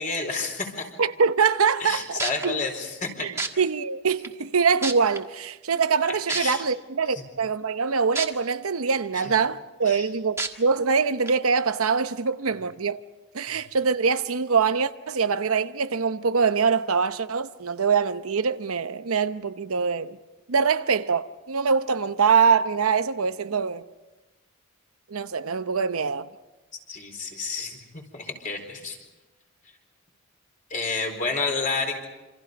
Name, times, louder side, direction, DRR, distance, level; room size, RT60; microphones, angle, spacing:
voice 1, 0.0-0.9 1.8-3.3 6.1-6.6 7.1-7.2 9.2-9.3 9.8-10.1 26.9-29.0 30.7-32.1, left 4 dB, 40° left, 4.4 m, -30 dB
voice 2, 1.0-2.6 3.2-13.0 13.3-20.2 20.5-23.8 25.1-26.3, right 5 dB, 90° right, 0.8 m, -24 dB
sound 1, 1.8-1.9 2.2-2.5 3.4-3.5 4.2-4.3 4.8-5.2 6.3-6.4 8.2-8.3 8.8-8.9 10.4-10.5 11.3-11.4, right 3 dB, 15° right, 1.6 m, -27 dB
27.5 x 26.5 x 5.3 m
head